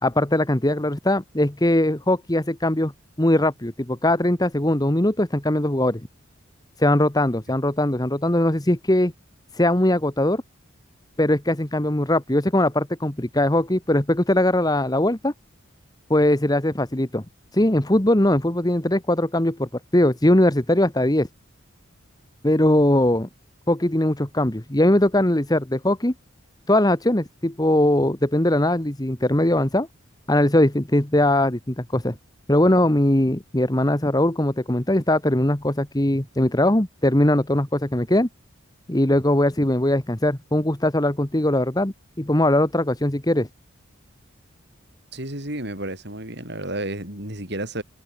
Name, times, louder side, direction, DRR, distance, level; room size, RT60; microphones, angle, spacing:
voice 1, 0.0-2.9 3.2-6.0 6.8-9.1 9.6-10.4 11.2-15.3 16.1-17.2 17.5-21.3 22.4-23.3 23.7-26.1 26.7-29.9 30.3-32.1 32.5-38.3 38.9-43.5, left 1 dB, 20° left, 1.3 m, -20 dB
voice 2, 45.1-47.8, right 1 dB, 55° right, 7.9 m, -31 dB
head